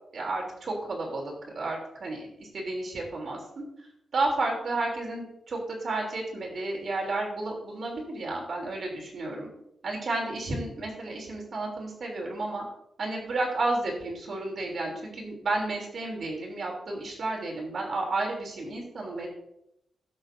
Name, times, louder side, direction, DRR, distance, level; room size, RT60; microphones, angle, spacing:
voice 1, 0.1-3.6 4.1-9.5 9.8-12.6 13.0-19.3, right 2 dB, 55° right, 0 dB, 3.2 m, -32 dB
18.0 x 6.5 x 2.7 m, 0.83 s
wide cardioid pair, 125°, 0 cm